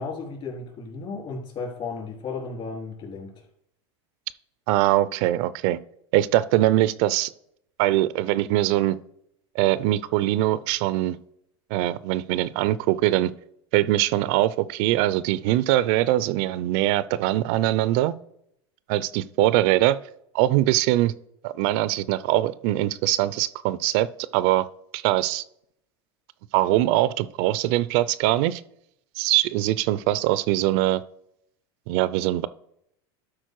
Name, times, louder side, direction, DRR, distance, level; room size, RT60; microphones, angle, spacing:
voice 1, 0.0-3.4, left 4 dB, 40° left, 1 dB, 3.4 m, -34 dB
voice 2, 4.7-5.8 6.1-7.3 7.8-9.0 9.5-11.2 11.7-13.3 13.7-18.1 18.9-20.0 20.3-21.1 21.4-24.7 24.9-25.4 26.5-28.6 29.2-31.0 31.9-32.5, right 15 dB, 65° right, 18 dB, 0.4 m, -22 dB
12.0 x 4.3 x 4.6 m, 0.74 s
supercardioid pair, 120°, 14 cm